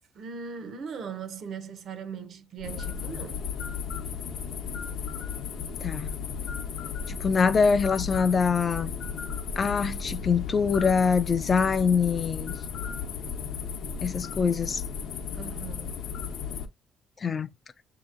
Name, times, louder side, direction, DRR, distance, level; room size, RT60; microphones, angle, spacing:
voice 1, 0.1-3.4 11.0-11.1 15.3-15.9, right 6 dB, 50° right, 0.6 m, -39 dB
sound 1, 2.6-16.7, left 6 dB, 65° left, 0.7 m, -35 dB
voice 2, 7.1-8.9 9.6-12.5 14.0-14.8 17.2-17.5, left 5 dB, 30° left, 0.3 m, -24 dB
6.5 x 2.8 x 2.5 m
cardioid pair, 145°, 0 cm